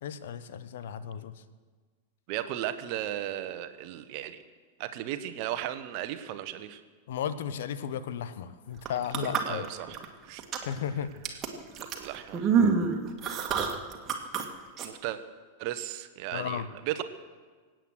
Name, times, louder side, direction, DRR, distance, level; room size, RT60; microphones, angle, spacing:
voice 1, 0.0-1.3 7.1-9.7 10.7-11.1 16.3-16.7, left 8 dB, 55° left, 13 dB, 0.9 m, -34 dB
voice 2, 2.3-4.4 4.8-6.8 9.5-10.0 10.2-10.4 11.9-12.5 14.8-15.2 15.6-17.0, right 13 dB, 45° right, 10 dB, 1.2 m, -35 dB
sound 1, 8.8-10.1 10.4-10.8 11.2-14.4 14.8-14.9, right 6 dB, 30° right, 2.0 m, -27 dB
24.5 x 9.1 x 6.4 m, 1.4 s
figure-of-eight pair, 90°, 0 cm